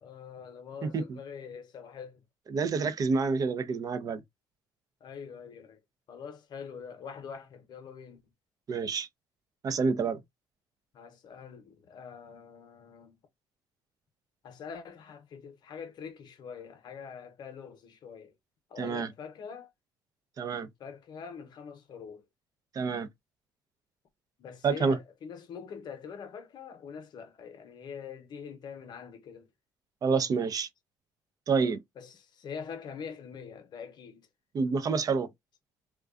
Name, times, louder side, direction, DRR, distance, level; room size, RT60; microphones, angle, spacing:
voice 1, 0.0-2.2 5.0-5.8 6.1-8.2 10.9-13.2 14.4-18.3 18.7-19.7 20.8-22.2 24.4-29.5 31.6-34.3, left 6 dB, 55° left, 0.8 m, -44 dB
voice 2, 2.5-4.2 8.7-9.1 9.6-10.2 18.8-19.1 20.4-20.7 22.8-23.1 24.6-25.0 30.0-30.7 31.5-31.8 34.5-35.3, right 5 dB, 40° right, 0.5 m, -28 dB
2.4 x 2.2 x 2.3 m
supercardioid pair, 70°, 9 cm